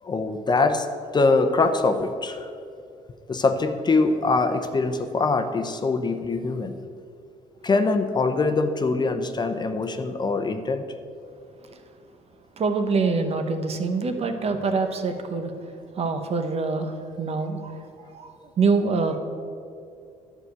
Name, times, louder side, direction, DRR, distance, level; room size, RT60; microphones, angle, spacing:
voice 1, 0.0-0.9 1.1-2.5 3.3-6.8 7.6-10.8, left 3 dB, 30° left, 7 dB, 0.8 m, -23 dB
voice 2, 12.6-15.5 16.0-17.8 18.1-19.2, right 4 dB, 45° right, 6 dB, 1.0 m, -25 dB
11.0 x 5.0 x 8.1 m, 2.4 s
cardioid pair, 100°, 14 cm